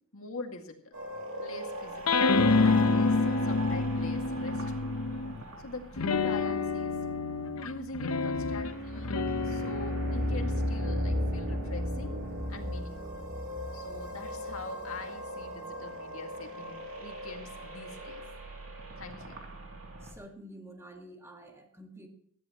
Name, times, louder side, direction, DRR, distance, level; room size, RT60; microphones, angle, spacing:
voice 1, 0.1-1.0 1.4-4.9 5.6-7.0 7.6-9.2 9.4-12.2 12.5-13.2 13.7-18.2 19.0-19.4, left 2 dB, 70° left, 3 dB, 2.1 m, -44 dB
sound 1, 0.9-20.1, left 1 dB, 65° right, 2.9 m, -37 dB
sound 2, 2.1-5.4 6.0-12.7, left 3 dB, 85° left, 0.9 m, -29 dB
voice 2, 20.0-22.1, right 1 dB, 10° right, 2 dB, 1.9 m, -49 dB
19.0 x 13.5 x 3.0 m, 0.64 s
head